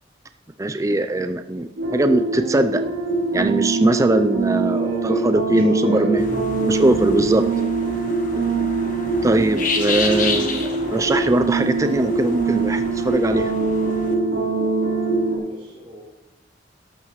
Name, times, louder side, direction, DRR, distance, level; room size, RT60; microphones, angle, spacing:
voice 1, 0.6-2.8 3.3-6.3 6.6-7.5 9.2-13.5, right 2 dB, 15° right, 9 dB, 0.3 m, -21 dB
sound 1, 1.8-15.4, right 3 dB, 85° right, 3.4 m, -23 dB
voice 2, 4.6-6.3 15.4-16.0, equal, 30° right, -3 dB, 4.1 m, -34 dB
sound 2, 6.2-14.1, left 4 dB, 40° left, 1.4 m, -31 dB
13.0 x 12.0 x 3.1 m, 1.0 s
head